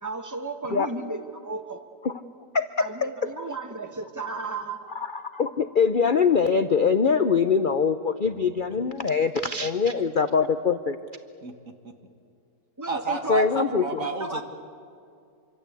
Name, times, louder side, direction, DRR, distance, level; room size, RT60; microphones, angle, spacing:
voice 1, 0.0-1.8 2.8-4.9 12.8-14.4, right 3 dB, 10° right, 5 dB, 1.5 m, -34 dB
voice 2, 2.5-2.9 4.9-11.0 13.3-14.0, left 5 dB, 50° left, 10 dB, 0.6 m, -23 dB
voice 3, 11.4-11.9 12.9-14.4, right 4 dB, 50° right, 6 dB, 2.2 m, -32 dB
26.5 x 24.5 x 8.3 m, 2.4 s
omnidirectional pair, 1.9 m